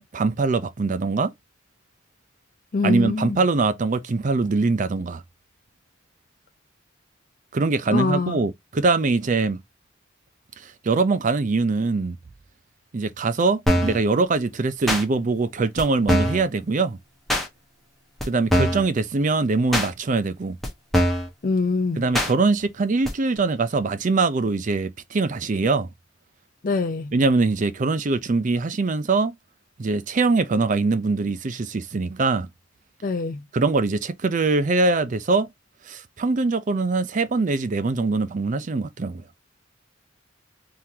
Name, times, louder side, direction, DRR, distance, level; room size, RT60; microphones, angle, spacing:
voice 1, 0.0-1.3 2.8-5.2 7.5-9.6 10.6-12.2 12.9-17.0 18.3-20.6 22.0-25.9 27.1-29.4 29.8-32.5 33.5-35.5 35.9-39.2, right 3 dB, 40° right, 0.5 m, -23 dB
voice 2, 2.7-3.3 7.9-8.4 21.4-22.0 26.6-27.1 33.0-33.4, left 4 dB, 45° left, 0.5 m, -24 dB
sound 1, 13.7-14.0 14.9-15.0 15.8-15.9 16.1-16.4 17.3-17.5 18.2-18.3 18.5-18.9 19.7-19.9 20.6-20.7 20.9-21.3 22.1-22.3 23.1-23.2, equal, ahead, 1.1 m, -21 dB
3.6 x 3.0 x 2.7 m
head